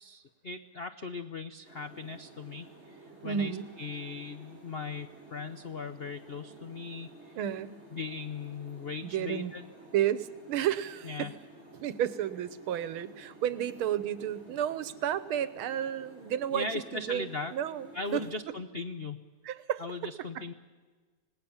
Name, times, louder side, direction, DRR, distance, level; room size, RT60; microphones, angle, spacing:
voice 1, 0.0-7.4 7.9-9.6 11.0-11.3 16.5-17.5 17.9-19.3 19.8-20.5, left 3 dB, 75° left, 9 dB, 0.5 m, -39 dB
sound 1, 1.6-18.4, right 2 dB, 30° right, 5.3 m, -53 dB
voice 2, 3.2-3.7 7.4-7.8 9.0-9.5 9.9-11.3 11.7-18.3 19.4-19.8 20.4-20.5, right 10 dB, 90° right, 15 dB, 1.8 m, -32 dB
26.5 x 19.0 x 7.2 m, 1.4 s
omnidirectional pair, 2.3 m